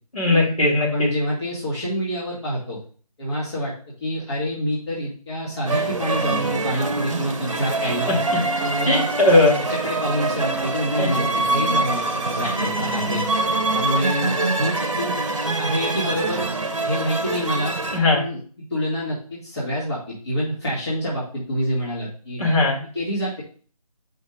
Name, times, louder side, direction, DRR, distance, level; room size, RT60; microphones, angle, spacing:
voice 1, 0.1-1.1 7.8-7.9 8.9-9.6 11.0-11.1 17.9-18.2 22.4-22.8, left 2 dB, 65° left, -4 dB, 2.7 m, -18 dB
voice 2, 0.9-2.8 3.2-3.7 4.0-8.2 8.6-9.1 9.7-13.3 13.7-15.2 15.6-16.5 16.8-17.8 18.1-18.4 18.7-22.4 22.9-23.4, equal, 45° left, -7 dB, 2.3 m, -27 dB
sound 1, 5.7-18.0, right 2 dB, 50° right, 0.8 m, -24 dB
7.1 x 5.3 x 2.6 m, 0.43 s
figure-of-eight pair, 155°, 20 cm